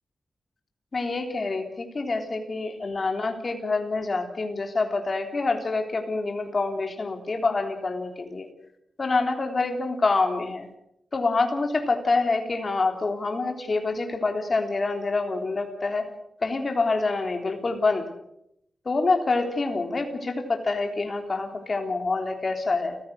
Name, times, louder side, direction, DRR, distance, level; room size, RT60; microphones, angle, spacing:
voice 1, 0.9-8.5 9.0-10.7 11.1-16.1 16.4-18.1 18.9-23.0, left 3 dB, 40° left, 4 dB, 3.6 m, -26 dB
29.5 x 15.5 x 6.6 m, 0.78 s
wide cardioid pair, 120°, 0 cm